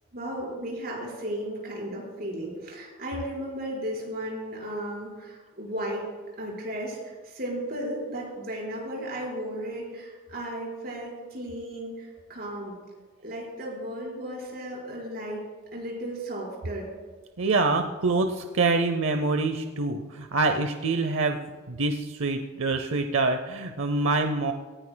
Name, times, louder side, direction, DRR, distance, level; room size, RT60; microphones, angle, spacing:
voice 1, 0.1-6.0 6.4-12.8 13.2-15.4 15.7-16.9, right 1 dB, 50° right, -3 dB, 4.7 m, -35 dB
voice 2, 17.4-24.5, right 3 dB, 80° right, 7 dB, 0.7 m, -26 dB
18.0 x 15.5 x 2.2 m, 1.4 s
head